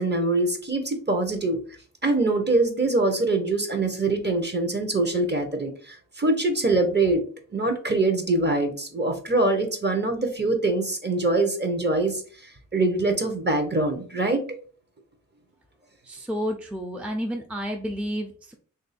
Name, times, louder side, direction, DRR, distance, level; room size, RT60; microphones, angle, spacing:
voice 1, 0.0-1.6 2.0-7.2 7.5-14.6, right 2 dB, 35° right, 5 dB, 0.9 m, -24 dB
voice 2, 16.0-18.5, equal, 5° right, 2 dB, 0.5 m, -30 dB
3.1 x 2.6 x 4.1 m, 0.42 s
wide cardioid pair, 65°, 31 cm